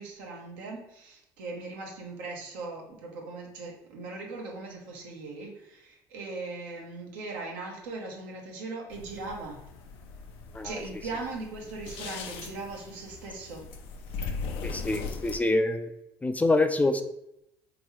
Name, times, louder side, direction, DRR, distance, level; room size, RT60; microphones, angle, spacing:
voice 1, 0.0-9.7 10.6-13.7, right 3 dB, 80° right, 0 dB, 0.9 m, -39 dB
sound 1, 8.9-15.4, left 5 dB, 70° left, 0.5 m, -39 dB
voice 2, 14.6-15.9 16.2-17.0, left 2 dB, 15° left, 7 dB, 0.4 m, -25 dB
3.6 x 3.0 x 3.1 m, 0.81 s
hypercardioid pair, 65°, 10 cm